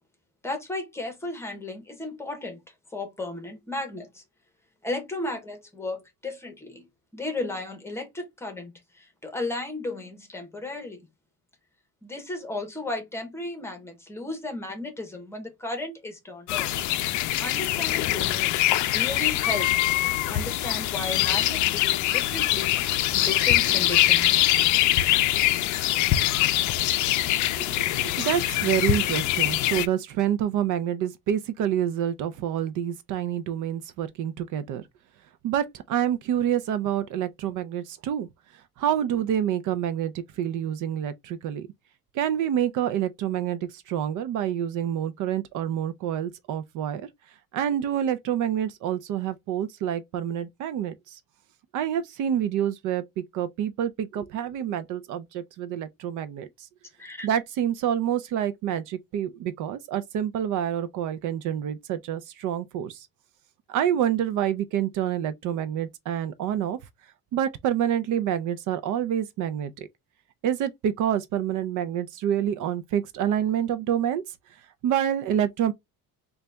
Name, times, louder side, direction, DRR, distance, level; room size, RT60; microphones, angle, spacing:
voice 1, 0.4-2.6 2.9-4.2 4.8-6.9 7.1-11.0 12.0-16.7 17.4-19.7 20.3-24.4 57.0-57.3, left 2 dB, 10° left, 0.9 m, -34 dB
sound 1, 16.5-29.9, left 14 dB, 60° left, 0.4 m, -23 dB
voice 2, 27.6-34.8 35.4-38.3 38.5-41.7 42.1-47.1 47.5-51.2 51.7-56.7 57.2-63.1 63.7-66.8 67.3-69.9 70.4-74.2 74.8-75.7, right 10 dB, 60° right, 0.5 m, -27 dB
3.9 x 2.3 x 3.3 m
cardioid pair, 165°, 34 cm